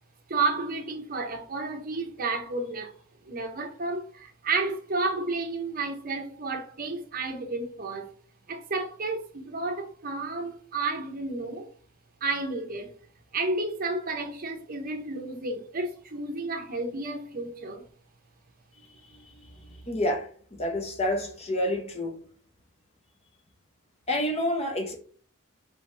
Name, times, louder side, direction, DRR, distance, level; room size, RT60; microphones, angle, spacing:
voice 1, 0.3-2.9 3.3-8.1 8.5-11.7 12.2-12.9 13.3-17.8, right 3 dB, 45° right, 0.7 m, -31 dB
voice 2, 19.9-20.3 20.6-22.2 24.1-25.0, left 1 dB, 30° left, 0.8 m, -28 dB
4.6 x 3.4 x 3.3 m
head